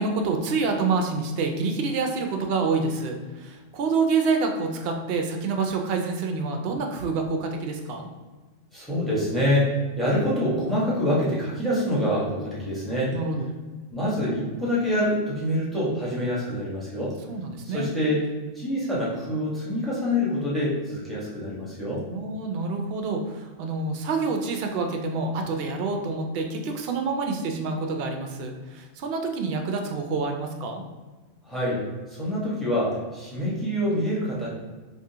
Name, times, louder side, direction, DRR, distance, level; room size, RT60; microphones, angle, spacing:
voice 1, 0.0-8.1 13.1-13.5 17.3-17.9 22.1-30.8, right 4 dB, 65° right, 4 dB, 0.7 m, -27 dB
voice 2, 8.7-13.1 13.9-17.2 17.6-18.3 18.5-22.0 31.4-31.8 32.1-34.5, left 1 dB, ahead, -8 dB, 1.0 m, -26 dB
3.5 x 2.9 x 2.7 m, 1.3 s
omnidirectional pair, 1.3 m